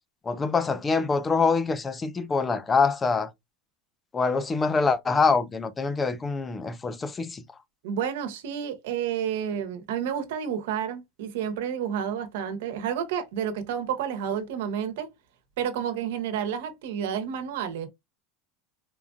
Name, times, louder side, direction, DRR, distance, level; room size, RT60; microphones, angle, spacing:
voice 1, 0.2-3.3 4.1-7.4, left 4 dB, 15° left, 0.4 m, -25 dB
voice 2, 7.8-15.1 15.6-17.9, right 8 dB, 85° right, 1.0 m, -30 dB
4.4 x 2.5 x 2.4 m
supercardioid pair, 150°, 0 cm